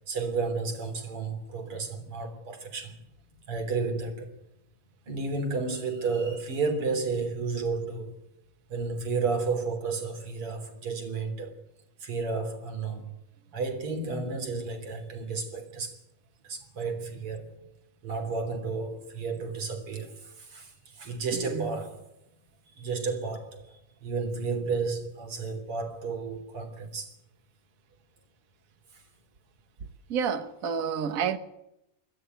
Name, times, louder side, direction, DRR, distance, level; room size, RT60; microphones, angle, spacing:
voice 1, 0.1-3.0 3.5-4.3 5.1-8.2 8.7-11.5 12.0-13.0 13.5-15.9 16.4-17.5 18.0-22.1 22.8-23.6 24.0-27.1, right 4 dB, 80° right, 4.3 m, -32 dB
voice 2, 21.3-21.8 30.1-31.4, right 7 dB, 45° right, 1.5 m, -30 dB
21.0 x 13.5 x 9.2 m
omnidirectional pair, 2.4 m